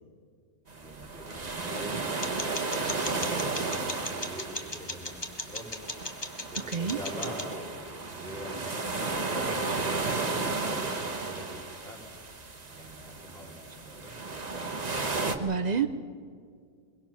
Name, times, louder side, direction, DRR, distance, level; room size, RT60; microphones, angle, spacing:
voice 1, 0.6-2.1 2.6-5.7 6.4-12.0 12.7-14.1, equal, ahead, -2 dB, 5.1 m, -44 dB
sound 1, 0.7-15.4, right 3 dB, 25° right, 1.3 m, -34 dB
sound 2, 2.2-7.5, left 2 dB, 15° left, 1.2 m, -39 dB
voice 2, 6.6-7.0 15.4-15.9, right 6 dB, 60° right, 8 dB, 0.4 m, -28 dB
22.5 x 22.0 x 6.0 m, 2.1 s
omnidirectional pair, 1.7 m